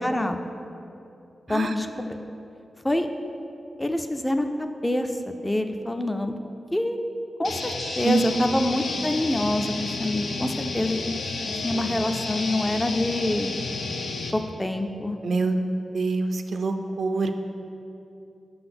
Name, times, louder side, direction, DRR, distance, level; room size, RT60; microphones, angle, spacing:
voice 1, 0.0-0.4 1.5-2.1 2.8-3.1 3.8-6.4 6.7-7.0 7.4-7.7 8.0-13.5 14.3-15.2, left 1 dB, 15° left, 6 dB, 0.3 m, -26 dB
sound 1, 7.4-14.3, left 3 dB, 85° left, 0.5 m, -31 dB
voice 2, 8.0-8.4 15.2-15.6 15.9-17.3, right 3 dB, 65° right, 7 dB, 0.4 m, -25 dB
5.7 x 3.9 x 5.9 m, 2.7 s
wide cardioid pair, 105°, 0 cm